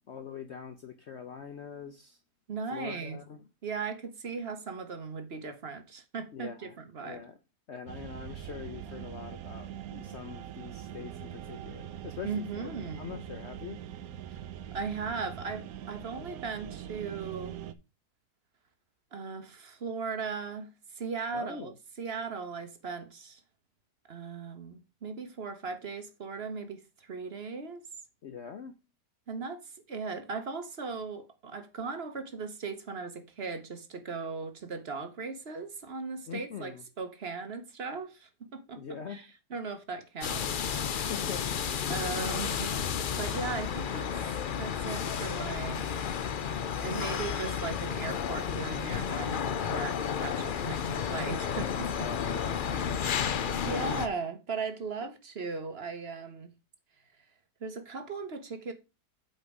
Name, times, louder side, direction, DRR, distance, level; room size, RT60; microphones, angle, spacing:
voice 1, 0.1-2.2 2.7-3.4 6.3-6.7 7.0-7.4 7.7-12.7 13.0-13.8 21.3-21.7 28.2-28.7 36.3-36.8 38.8-39.3 41.0-41.5 41.9-42.0 51.9-54.0, left 7 dB, 55° left, 0.8 m, -43 dB
voice 2, 2.5-3.2 3.6-7.2 12.2-13.1 14.7-17.6 19.1-23.4 24.1-27.8 29.3-36.7 37.0-40.5 40.7-41.1 41.9-42.7 43.1-44.1 44.6-45.9 46.8-52.1 52.9-53.1 53.6-56.5 57.6-58.7, right 4 dB, 45° right, 1.1 m, -38 dB
sound 1, 7.9-17.7, right 10 dB, 65° right, 1.0 m, -43 dB
sound 2, 40.2-54.1, left 7 dB, 80° left, 0.4 m, -32 dB
8.2 x 4.3 x 4.9 m
omnidirectional pair, 1.7 m